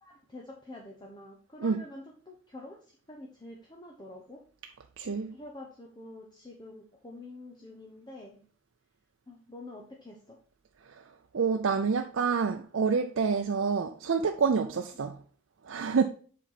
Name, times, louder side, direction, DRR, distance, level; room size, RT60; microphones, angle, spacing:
voice 1, 0.0-4.4 5.3-8.4 9.3-10.3 14.9-15.1, left 1 dB, 20° left, 0.8 m, -47 dB
voice 2, 5.0-5.3 11.3-15.2 15.7-16.0, right 5 dB, 80° right, 0.5 m, -27 dB
7.4 x 4.5 x 4.0 m
head